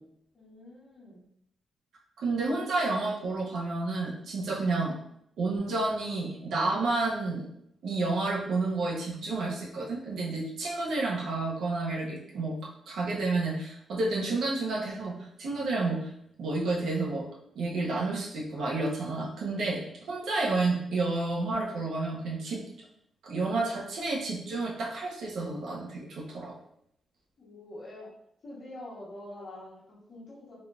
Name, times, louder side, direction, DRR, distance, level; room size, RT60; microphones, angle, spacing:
voice 1, 0.3-1.2 27.4-28.1 28.4-30.6, left 1 dB, 45° left, -10 dB, 1.0 m, -45 dB
voice 2, 2.2-5.0 5.4-7.5 7.8-15.1 15.4-16.1 16.4-17.3 17.5-19.8 20.1-22.6 23.2-26.5, right 3 dB, 70° right, -2 dB, 0.7 m, -30 dB
3.5 x 2.5 x 2.3 m, 0.73 s
wide cardioid pair, 165°, 0 cm